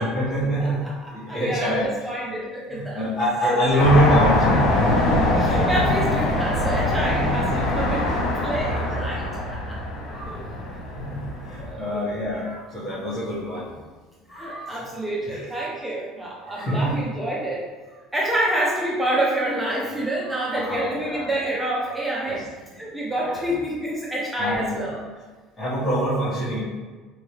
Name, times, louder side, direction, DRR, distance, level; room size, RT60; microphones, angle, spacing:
voice 1, 0.0-1.9 2.3-2.4 2.7-4.7 7.0-7.3 8.7-8.9 10.1-10.4 10.9-13.7 14.3-14.8 15.3-15.4 16.5-16.9 20.5-21.3 22.3-22.4 23.2-23.4 24.4-24.9 25.6-26.6, equal, 25° left, -12 dB, 1.4 m, -25 dB
voice 2, 0.6-3.0 3.4-3.9 5.4-9.8 10.3-10.5 11.2-11.3 11.6-12.2 14.3-17.7 18.1-22.5 22.7-25.0, right 1 dB, 5° right, -5 dB, 0.7 m, -28 dB
sound 1, 3.8-11.7, left 1 dB, 75° left, 0.9 m, -23 dB
4.7 x 2.7 x 3.2 m, 1.3 s
cardioid pair, 130°, 0 cm